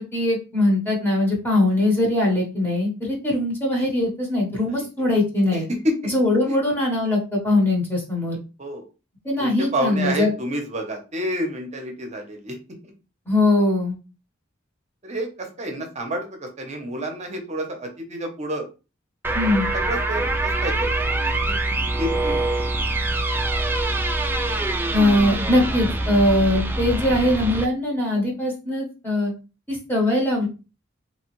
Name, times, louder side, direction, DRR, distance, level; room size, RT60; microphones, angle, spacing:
voice 1, 0.0-5.7 6.1-8.4 9.2-10.3 13.3-14.0 19.3-19.7 24.9-29.3 29.7-30.5, left 1 dB, 10° left, -3 dB, 0.9 m, -21 dB
voice 2, 5.5-6.1 6.5-6.6 8.6-8.9 9.4-12.6 12.8-12.9 15.0-18.7 19.7-21.5 22.0-22.6, equal, 35° right, 4 dB, 0.7 m, -29 dB
sound 1, 19.2-27.7, right 2 dB, 10° right, 0.3 m, -24 dB
2.9 x 2.3 x 3.0 m, 0.31 s
head